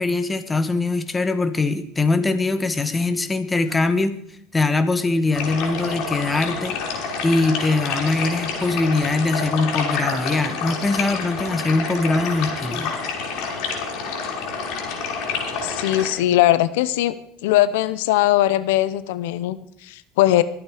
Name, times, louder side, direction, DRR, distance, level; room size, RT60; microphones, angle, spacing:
voice 1, 0.0-4.2 4.5-6.8 7.2-12.9, left 3 dB, 15° left, 10 dB, 1.4 m, -22 dB
sound 1, 5.3-16.1, left 5 dB, 70° left, 5.8 m, -28 dB
voice 2, 15.6-17.1 17.4-20.4, left 14 dB, 85° left, 15 dB, 0.7 m, -20 dB
23.5 x 8.8 x 5.0 m, 0.72 s
supercardioid pair, 115°, 0 cm